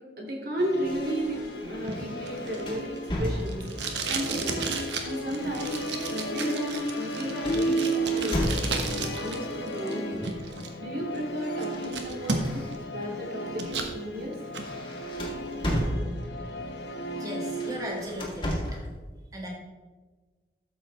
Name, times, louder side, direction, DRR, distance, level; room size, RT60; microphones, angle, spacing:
voice 1, 0.2-3.6 4.1-4.6 5.0-5.8 6.1-8.5 8.8-10.2 10.8-14.4, equal, 55° right, -2 dB, 2.5 m, -33 dB
Musical instrument, 0.6-18.2, right 1 dB, 75° left, 1.0 m, -34 dB
sound 1, 0.8-3.9 4.9-9.1 10.1-10.5 10.8-13.1 13.6-13.8 14.1-16.5 17.4-18.9, equal, 30° left, 1.9 m, -35 dB
Packing tape duct tape, 1.9-9.4 9.7-10.7 11.2-11.3 11.6-12.8 13.1-13.9 14.3-14.7, right 4 dB, 90° right, 1.2 m, -34 dB
voice 2, 17.2-18.7 19.3-19.5, right 1 dB, 20° right, -1 dB, 1.7 m, -36 dB
13.0 x 7.4 x 3.4 m, 1.3 s
head